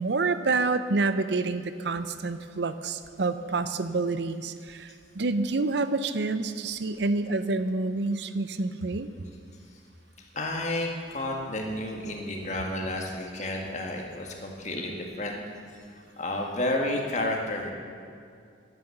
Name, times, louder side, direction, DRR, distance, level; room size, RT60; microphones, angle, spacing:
voice 1, 0.0-9.1, right 3 dB, 65° right, 11 dB, 0.6 m, -28 dB
voice 2, 10.3-15.4 15.9-17.7, left 1 dB, 40° left, 1 dB, 1.9 m, -31 dB
11.5 x 11.5 x 7.9 m, 2.3 s
head